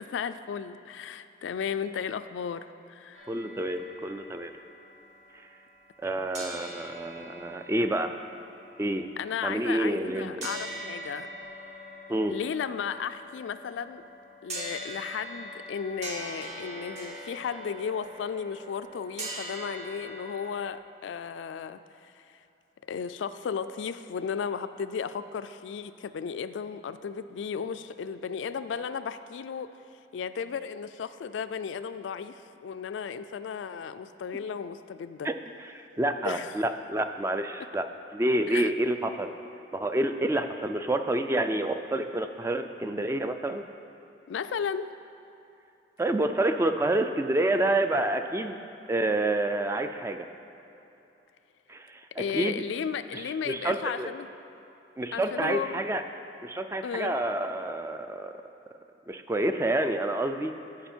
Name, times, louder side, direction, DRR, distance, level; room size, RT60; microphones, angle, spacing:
voice 1, 0.0-3.3 6.2-6.3 9.2-11.3 12.3-14.0 14.4-22.4 22.9-29.7 30.1-35.3 36.2-36.5 38.5-38.7 44.3-44.9 52.2-54.3 55.1-55.8 56.8-57.2, left 6 dB, 80° left, 12 dB, 0.3 m, -34 dB
sound 1, 3.1-6.1 6.3-20.5, right 1 dB, 40° right, 1.0 m, -43 dB
voice 2, 3.3-4.6 6.0-8.1 8.8-9.1 9.4-10.5 12.1-12.4 35.2-35.4 36.0-37.9 38.1-39.3 39.7-43.6 46.0-48.6 48.9-50.3 51.7-52.0 52.3-52.6 53.1-54.1 55.0-56.0 56.4-58.3 59.1-60.5, right 1 dB, 15° right, 7 dB, 0.3 m, -28 dB
14.5 x 4.9 x 4.4 m, 2.9 s
head